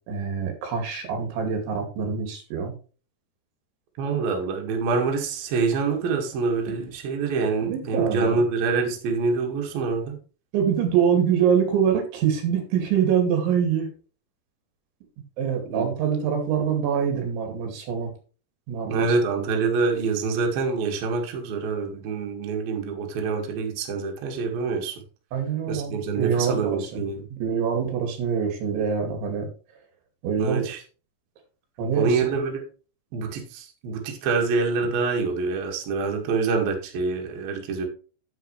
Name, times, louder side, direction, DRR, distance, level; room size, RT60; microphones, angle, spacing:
voice 1, 0.1-2.7 7.6-8.4 10.5-13.9 15.4-18.1 18.7-19.2 25.3-29.5 30.2-30.7 31.8-32.3, right 7 dB, 90° right, 4 dB, 4.7 m, -25 dB
voice 2, 4.0-10.2 15.7-15.9 18.9-25.0 25.7-27.2 30.4-30.8 32.0-32.6 33.1-37.9, right 4 dB, 60° right, 1 dB, 3.6 m, -26 dB
9.7 x 9.4 x 3.3 m, 0.37 s
omnidirectional pair, 5.2 m